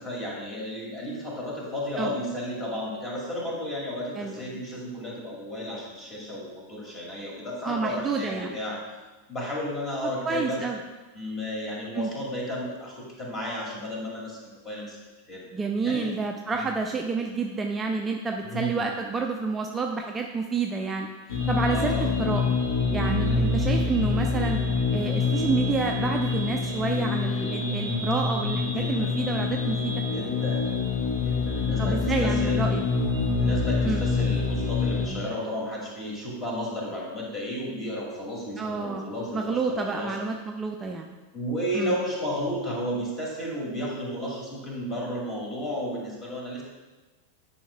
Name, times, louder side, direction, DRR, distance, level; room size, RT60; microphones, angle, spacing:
voice 1, 0.0-8.8 9.3-10.6 11.1-15.0 15.3-15.4 15.8-16.1 16.5-16.7 18.4-18.9 21.7-22.1 23.2-23.5 28.6-29.2 30.1-30.7 31.1-32.6 33.4-40.2 41.3-46.6, equal, 25° left, -3 dB, 2.2 m, -33 dB
voice 2, 4.2-4.6 7.6-8.6 10.2-10.8 11.9-12.1 15.5-21.1 21.5-22.6 22.9-24.6 24.9-29.9 31.8-32.8 33.8-34.0 38.6-41.2 41.7-41.9, right 4 dB, 15° right, 2 dB, 0.4 m, -29 dB
sound 1, 21.3-35.1, left 4 dB, 60° left, 1.2 m, -26 dB
10.0 x 5.7 x 2.3 m, 1.2 s
figure-of-eight pair, 90°, 0 cm